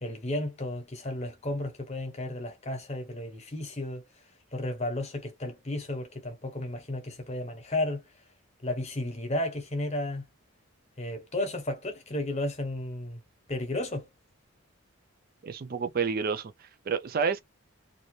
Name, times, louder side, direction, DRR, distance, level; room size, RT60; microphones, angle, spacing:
voice 1, 0.0-4.0 4.5-8.0 8.6-10.2 11.0-13.2 13.5-14.1, left 1 dB, 30° left, 0.9 m, -33 dB
voice 2, 15.4-17.4, right 5 dB, 45° right, 0.4 m, -30 dB
2.6 x 2.4 x 3.0 m
head